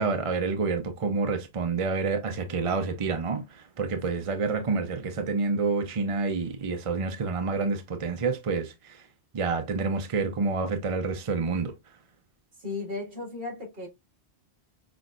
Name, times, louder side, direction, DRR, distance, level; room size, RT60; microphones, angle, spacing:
voice 1, 0.0-9.0 9.3-11.7, right 4 dB, 40° right, 0.5 m, -28 dB
voice 2, 12.6-13.9, left 3 dB, 60° right, 2.1 m, -35 dB
5.9 x 2.5 x 2.3 m
omnidirectional pair, 1.1 m